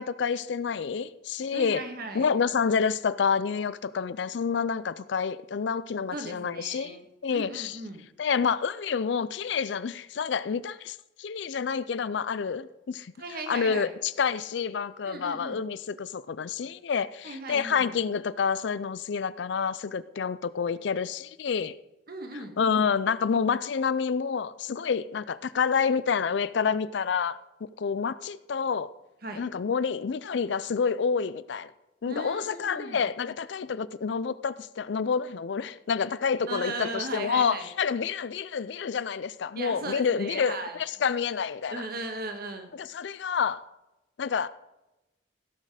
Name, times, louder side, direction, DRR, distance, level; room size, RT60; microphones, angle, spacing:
voice 1, 0.0-1.8 2.1-7.8 8.2-13.1 13.5-21.7 22.6-27.4 27.8-28.9 29.4-31.7 32.0-41.8 42.8-43.6 44.2-44.5, left 6 dB, 65° left, 0.4 m, -28 dB
voice 2, 1.5-2.3 6.1-7.0 7.3-8.1 13.2-13.9 15.0-15.6 17.2-18.0 22.1-22.5 29.2-29.4 32.0-33.0 36.5-37.7 39.5-40.8 41.7-42.7, right 2 dB, 50° right, 1.5 m, -37 dB
16.5 x 6.5 x 4.9 m
head